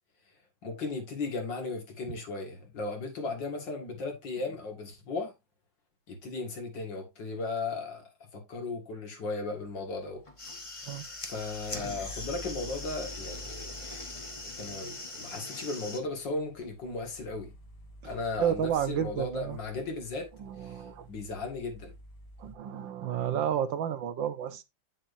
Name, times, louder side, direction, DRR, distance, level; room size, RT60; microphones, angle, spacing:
voice 1, 0.6-5.3 6.1-10.2 11.0-13.8 14.4-17.5 18.0-20.3 20.6-20.8 21.1-21.9, left 3 dB, 70° left, 2.7 m, -36 dB
sound 1, 9.6-22.5, equal, 85° left, 3.0 m, -50 dB
sound 2, 10.3-16.0, left 2 dB, 20° left, 1.1 m, -41 dB
voice 2, 18.4-19.6 20.4-21.1 22.4-24.6, right 9 dB, 80° right, 1.6 m, -31 dB
8.7 x 7.6 x 2.6 m
omnidirectional pair, 2.1 m